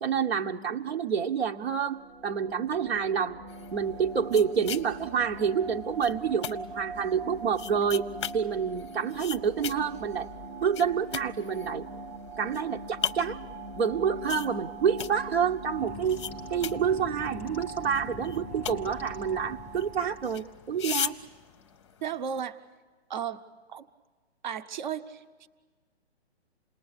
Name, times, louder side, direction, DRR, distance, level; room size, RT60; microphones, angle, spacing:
voice 1, 0.0-3.4 3.7-8.0 8.3-10.3 10.6-11.9 12.4-13.4 13.7-16.2 16.5-21.2, right 7 dB, 70° right, 2 dB, 1.3 m, -28 dB
sound 1, 1.7-20.6, right 2 dB, 20° right, 1.0 m, -42 dB
sound 2, 3.5-22.5, left 9 dB, 25° left, 0.7 m, -41 dB
sound 3, 15.8-21.8, left 9 dB, 5° left, 1.1 m, -47 dB
voice 2, 22.0-22.6 23.1-23.4 23.7-23.9 24.4-25.5, right 8 dB, 45° right, 10 dB, 1.0 m, -34 dB
28.5 x 20.0 x 9.8 m, 1.4 s
hypercardioid pair, 170°, 33 cm